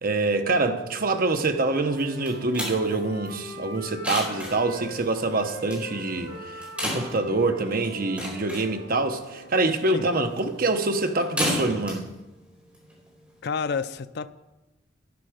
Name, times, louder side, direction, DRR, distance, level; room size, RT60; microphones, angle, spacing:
voice 1, 0.0-12.0, right 2 dB, 50° right, 0.9 m, -25 dB
Wind instrument woodwind instrument, 1.4-5.0 5.3-9.5, equal, 80° right, 3.0 m, -41 dB
sound 1, 1.9-13.4, left 1 dB, 5° right, 4.7 m, -35 dB
voice 2, 13.4-14.3, left 5 dB, 60° left, 0.5 m, -29 dB
12.0 x 10.5 x 5.0 m
head